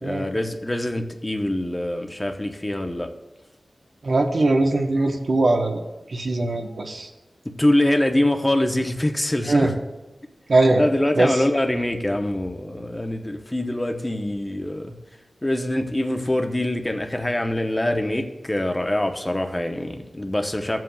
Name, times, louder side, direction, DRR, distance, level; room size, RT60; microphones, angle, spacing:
voice 1, 0.0-3.1 7.4-9.7 10.8-15.0 15.4-20.8, left 1 dB, 20° left, 5 dB, 0.9 m, -24 dB
voice 2, 4.0-5.8 6.1-7.1 9.5-9.7 10.5-10.8 11.1-11.4, right 2 dB, 65° right, 2 dB, 1.0 m, -20 dB
14.0 x 7.6 x 2.3 m, 1.1 s
wide cardioid pair, 60°, 0 cm